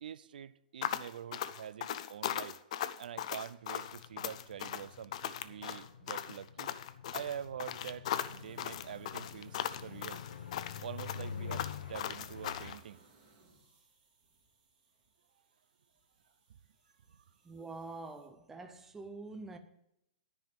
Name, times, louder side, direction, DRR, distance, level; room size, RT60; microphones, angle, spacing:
voice 1, 0.0-2.6 3.0-6.7 7.1-10.2 10.8-13.0 17.1-17.2, right 9 dB, 75° right, 0.4 m, -45 dB
sound 1, 0.8-12.8, left 10 dB, 45° left, 0.5 m, -38 dB
sound 2, 3.8-12.7, left 7 dB, 75° left, 0.8 m, -47 dB
sound 3, 8.1-18.3, right 3 dB, 25° right, 2.6 m, -63 dB
voice 2, 17.4-19.6, right 3 dB, 5° right, 0.5 m, -46 dB
10.5 x 5.6 x 7.5 m
hypercardioid pair, 170°, 5 cm